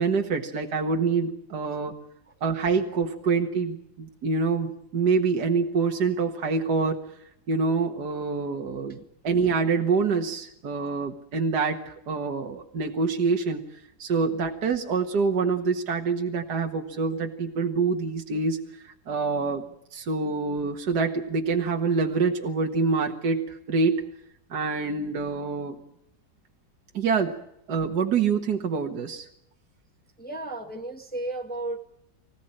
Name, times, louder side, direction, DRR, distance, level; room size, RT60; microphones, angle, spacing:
voice 1, 0.0-1.9 2.4-7.0 7.5-9.0 9.2-13.6 14.0-19.6 19.9-24.0 24.5-25.8 26.9-27.4 27.7-29.3, right 4 dB, 60° right, 2 dB, 2.1 m, -26 dB
voice 2, 30.2-31.8, right 2 dB, 5° left, 3 dB, 1.8 m, -33 dB
25.0 x 16.5 x 9.0 m, 0.78 s
omnidirectional pair, 2.0 m